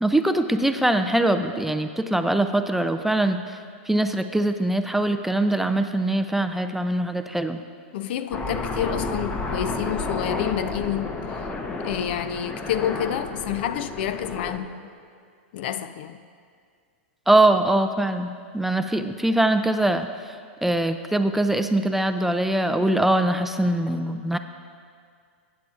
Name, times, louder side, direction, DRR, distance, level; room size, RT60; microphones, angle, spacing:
voice 1, 0.0-3.4 3.9-7.6 17.3-20.1 20.6-24.4, right 1 dB, 5° right, 0.3 m, -22 dB
voice 2, 7.9-11.5 11.8-15.0 15.5-16.2, left 10 dB, 60° left, 0.4 m, -29 dB
Aircraft, 8.3-14.6, left 3 dB, 20° left, 0.8 m, -31 dB
15.0 x 8.4 x 2.5 m
hypercardioid pair, 115°, 6 cm